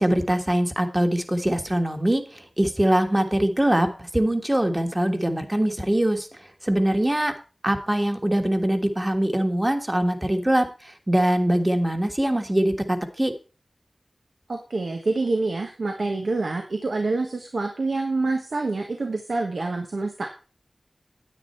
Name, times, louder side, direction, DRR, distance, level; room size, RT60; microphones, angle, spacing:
voice 1, 0.0-6.3 6.6-7.3 7.6-10.7 11.1-13.3, right 1 dB, 20° right, 6 dB, 1.5 m, -22 dB
voice 2, 14.5-20.3, right 3 dB, 80° right, 3 dB, 1.4 m, -27 dB
9.9 x 9.0 x 4.4 m, 0.34 s
wide cardioid pair, 70°, 0 cm